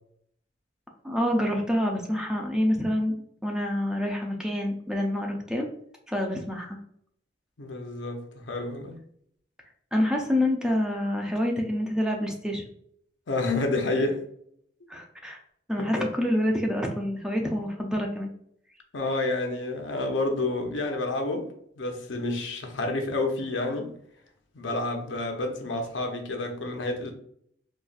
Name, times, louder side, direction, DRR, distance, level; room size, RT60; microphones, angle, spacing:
voice 1, 1.0-5.7 6.1-6.8 9.9-12.7 14.9-15.4 15.7-18.3, left 1 dB, 5° right, 1 dB, 0.4 m, -27 dB
voice 2, 7.6-8.9 13.3-14.2 15.8-16.1 18.9-21.5 21.8-23.9 24.5-27.1, left 2 dB, 90° left, 3 dB, 0.7 m, -29 dB
4.0 x 2.4 x 2.4 m, 0.68 s
head